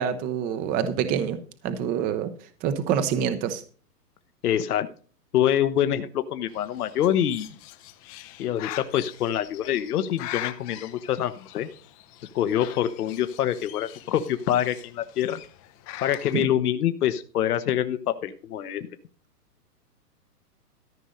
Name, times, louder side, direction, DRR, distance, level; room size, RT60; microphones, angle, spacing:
voice 1, 0.0-1.4 1.6-2.3 2.6-3.6 16.3-16.4, right 8 dB, 20° right, 10 dB, 0.7 m, -26 dB
voice 2, 4.4-4.9 5.3-7.5 8.4-11.7 12.3-15.4 16.0-18.9, left 10 dB, 65° left, 10 dB, 1.1 m, -25 dB
Bird, 6.5-16.4, left 14 dB, 25° left, 0.6 m, -42 dB
14.0 x 5.4 x 6.4 m, 0.40 s
hypercardioid pair, 135°, 48 cm